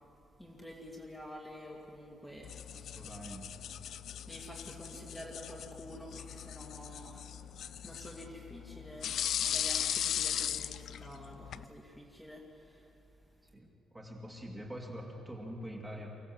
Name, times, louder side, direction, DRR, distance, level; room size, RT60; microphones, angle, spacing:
voice 1, 0.4-2.7 3.9-4.0 4.3-7.5 7.8-12.9, equal, 5° left, -2 dB, 2.2 m, -49 dB
sound 1, 2.4-11.6, left 9 dB, 65° left, 0.5 m, -38 dB
voice 2, 2.7-3.4 13.5-16.1, equal, 10° right, -1 dB, 2.4 m, -45 dB
25.0 x 15.5 x 7.6 m, 2.9 s
cardioid pair, 145°, 0 cm